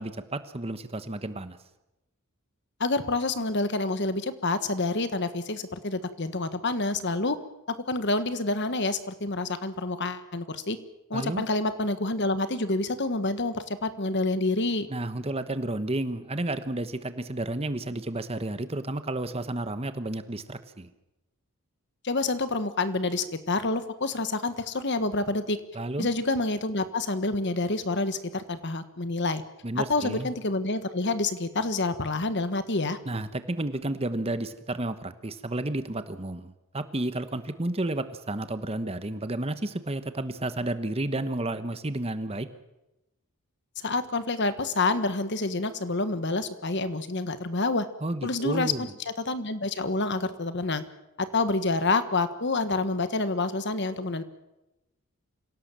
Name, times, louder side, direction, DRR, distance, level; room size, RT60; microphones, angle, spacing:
voice 1, 0.0-1.6 11.1-11.4 14.9-20.9 25.7-26.1 29.6-30.3 33.0-42.5 48.0-48.9, right 2 dB, 25° right, 11 dB, 1.1 m, -31 dB
voice 2, 2.8-7.4 7.7-10.8 11.1-14.9 22.0-25.6 26.0-29.4 29.8-33.0 43.8-47.9 48.2-48.9 49.2-50.8 51.2-54.2, left 2 dB, 50° left, 11 dB, 1.4 m, -28 dB
26.0 x 17.0 x 7.5 m, 0.94 s
head